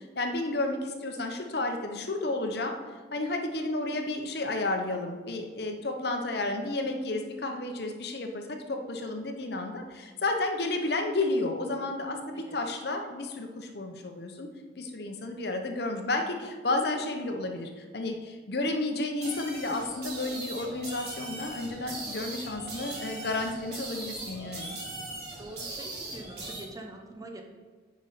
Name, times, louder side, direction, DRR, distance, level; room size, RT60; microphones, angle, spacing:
voice 1, 0.0-2.8 3.1-14.5 14.8-24.8, left 2 dB, 55° left, 4 dB, 0.8 m, -32 dB
sound 1, 19.2-26.6, right 2 dB, 55° right, 2.2 m, -40 dB
voice 2, 25.4-27.4, right 1 dB, 20° right, 3 dB, 0.7 m, -44 dB
9.4 x 5.2 x 4.1 m, 1.5 s
head